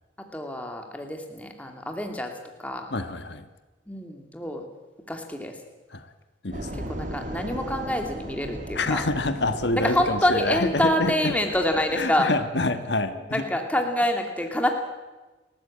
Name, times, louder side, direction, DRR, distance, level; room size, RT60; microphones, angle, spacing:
voice 1, 0.3-2.3 2.6-2.9 3.9-4.6 5.1-5.6 6.9-9.0 9.8-12.3 13.3-14.7, left 1 dB, 10° left, 4 dB, 2.5 m, -26 dB
voice 2, 2.9-3.5 5.9-6.1 6.4-6.9 8.7-11.3 11.9-13.4, left 2 dB, 65° left, 9 dB, 1.4 m, -27 dB
sound 1, 6.5-12.8, right 1 dB, 40° right, 2.3 m, -38 dB
30.0 x 14.0 x 8.7 m, 1.2 s
head